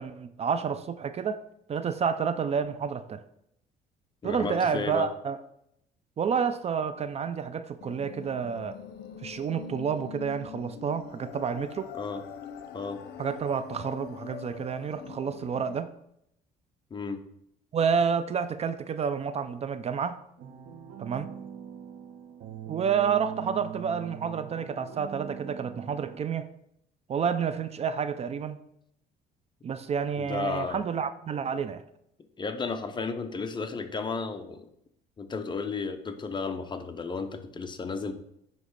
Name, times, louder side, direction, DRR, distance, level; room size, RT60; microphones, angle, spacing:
voice 1, 0.0-1.4 1.7-3.2 4.2-5.4 6.2-8.8 9.2-11.9 13.2-15.9 17.7-20.2 21.0-21.3 22.7-26.5 27.1-28.6 29.6-31.8, right 6 dB, 40° right, 12 dB, 0.5 m, -29 dB
voice 2, 4.2-5.1 11.9-12.2 12.7-13.0 16.9-17.2 30.2-30.8 32.4-34.7 35.2-38.1, left 4 dB, 25° left, 7 dB, 0.8 m, -33 dB
sound 1, 7.8-15.8, left 8 dB, 75° left, 0.8 m, -43 dB
sound 2, 20.4-26.2, right 8 dB, 75° right, 1.1 m, -42 dB
9.3 x 3.2 x 6.5 m, 0.76 s
cardioid pair, 110°, 17 cm